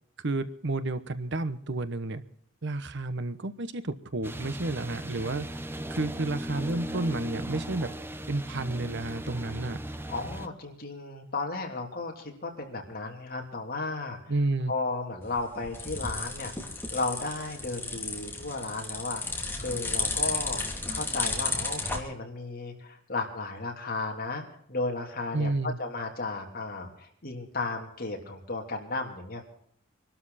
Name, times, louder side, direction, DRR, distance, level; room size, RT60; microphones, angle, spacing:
voice 1, 0.2-2.2 2.6-5.5 5.9-7.9 8.3-9.8 14.3-14.7 25.3-25.8, right 2 dB, 60° right, 12 dB, 1.1 m, -31 dB
sound 1, 4.2-10.5, right 1 dB, 10° right, 0.9 m, -37 dB
voice 2, 10.1-14.2 14.7-16.5 16.9-20.6 20.9-24.4 24.7-29.4, left 3 dB, 45° left, 2 dB, 3.4 m, -34 dB
sound 2, 15.2-22.0, left 3 dB, 10° left, 3.0 m, -33 dB
24.5 x 12.5 x 4.2 m, 0.65 s
head